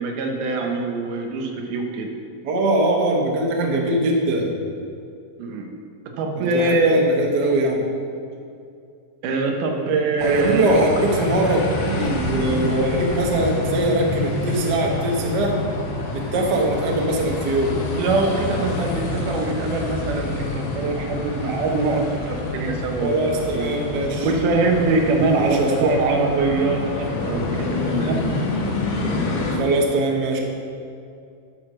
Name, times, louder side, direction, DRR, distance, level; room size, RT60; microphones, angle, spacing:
voice 1, 0.0-2.1 5.4-5.7 6.1-7.0 9.2-11.0 18.0-23.7 24.2-28.2, right 3 dB, 70° right, 2 dB, 2.4 m, -23 dB
voice 2, 2.4-4.5 6.4-7.8 10.2-15.6 16.1-17.8 23.0-24.3 25.3-25.9 29.5-30.4, right 1 dB, 90° right, 0 dB, 0.9 m, -22 dB
sound 1, 10.2-29.6, left 2 dB, 70° left, 3.1 m, -27 dB
10.5 x 6.2 x 6.2 m, 2.4 s
omnidirectional pair, 4.0 m